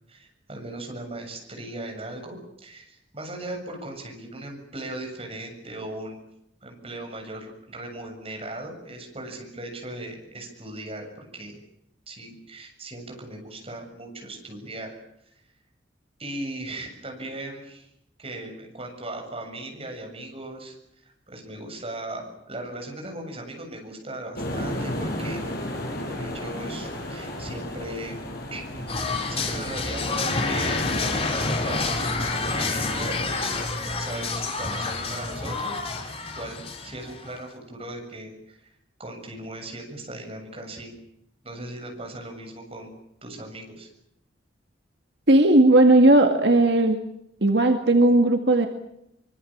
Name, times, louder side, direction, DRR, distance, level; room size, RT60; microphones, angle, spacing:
voice 1, 0.1-6.2 6.6-11.6 12.1-15.0 16.2-17.9 18.2-20.8 21.0-25.5 26.1-28.2 28.5-32.1 32.5-33.2 34.0-38.6 39.0-40.9 41.4-42.9 43.2-43.9, right 1 dB, 30° right, 3 dB, 7.4 m, -38 dB
sound 1, 24.4-33.7, left 1 dB, 55° left, 6.5 m, -33 dB
sound 2, 28.9-37.4, left 3 dB, 35° left, 3.2 m, -29 dB
voice 2, 45.3-47.0 47.4-48.7, right 2 dB, 70° right, 4 dB, 2.1 m, -17 dB
25.0 x 23.5 x 7.4 m, 0.81 s
head